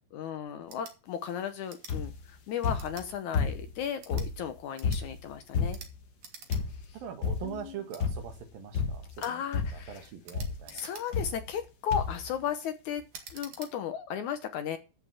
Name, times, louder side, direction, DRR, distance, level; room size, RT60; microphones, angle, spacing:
voice 1, 0.1-5.8 7.4-7.8 9.2-10.0 10.7-13.0 13.3-14.8, left 8 dB, 70° left, 2.0 m, -35 dB
sound 1, 0.6-1.0 1.7-2.0 2.8-3.1 3.9-4.3 4.7-5.0 5.7-5.9 6.2-6.6 7.0-7.1 7.9-8.0 9.2-9.4 10.2-11.3 11.9-12.2 13.1-13.7, right 6 dB, 55° right, 2.9 m, -48 dB
sound 2, 1.9-2.3 2.6-3.8 4.1-6.0 6.5-6.9 7.2-7.6 8.0-8.4 8.7-9.2 9.5-10.0 10.3-10.6 11.1-11.6 11.9-12.3 13.0-13.1 13.3-13.4, left 5 dB, 55° left, 1.3 m, -32 dB
voice 2, 6.9-9.4 9.7-11.2, right 8 dB, 75° right, 3.3 m, -43 dB
14.0 x 5.2 x 7.1 m
omnidirectional pair, 4.2 m